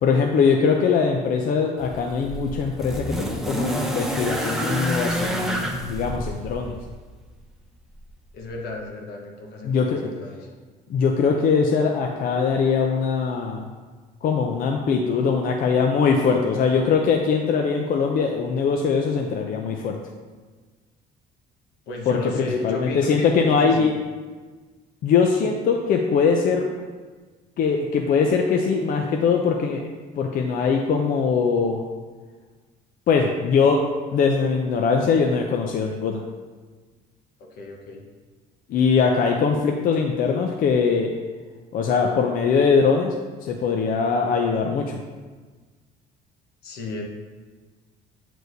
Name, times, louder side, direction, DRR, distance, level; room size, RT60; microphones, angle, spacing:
voice 1, 0.0-6.8 9.6-10.1 10.9-13.7 14.2-20.0 22.1-23.9 25.0-26.7 27.6-29.9 30.2-31.8 33.1-36.2 38.7-41.1 41.7-43.1 43.4-45.0, left 5 dB, 55° left, 2 dB, 0.5 m, -21 dB
sound 1, 1.8-7.0 8.1-8.2, equal, ahead, 0.6 m, -28 dB
voice 2, 8.3-10.5 21.9-23.9 37.4-38.0 46.6-47.0, left 2 dB, 80° left, 0 dB, 1.1 m, -34 dB
8.0 x 4.5 x 2.6 m, 1.4 s
cardioid pair, 110°, 17 cm